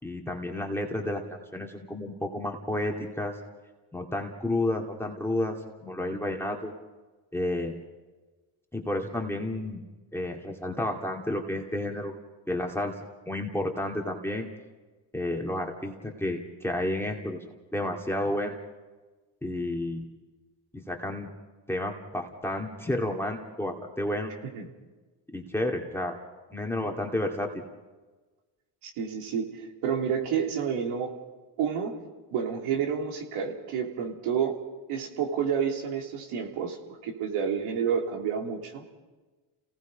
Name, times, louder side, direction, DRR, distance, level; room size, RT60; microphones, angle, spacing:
voice 1, 0.0-3.4 3.9-6.7 7.3-7.8 8.7-9.8 10.1-12.2 12.5-13.0 13.3-14.5 15.1-17.4 17.7-18.6 19.4-20.1 20.7-21.3 21.7-24.3 25.3-26.2 26.5-27.6, left 1 dB, 5° left, 2 dB, 2.4 m, -31 dB
voice 2, 28.8-31.1 31.6-31.9 32.3-34.6 34.9-36.8 37.0-38.8, right 7 dB, 85° right, 2 dB, 3.3 m, -29 dB
29.5 x 18.5 x 5.2 m, 1.2 s
supercardioid pair, 80°, 50 cm